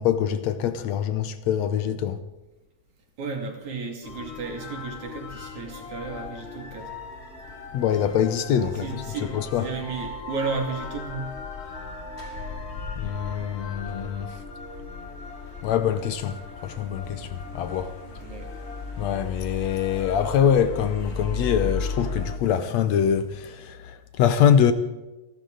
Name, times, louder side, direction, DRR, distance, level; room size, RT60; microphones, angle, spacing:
voice 1, 0.0-2.2 7.7-9.0 9.3-9.7 13.0-14.4 15.6-17.9 19.0-24.7, left 8 dB, 70° left, 1.9 m, -24 dB
voice 2, 3.2-6.9 8.8-11.3 17.4-17.6 18.2-18.5, right 4 dB, 75° right, 4.0 m, -33 dB
sound 1, 4.0-22.4, left 4 dB, 30° left, 1.2 m, -36 dB
29.5 x 11.5 x 3.9 m
omnidirectional pair, 3.4 m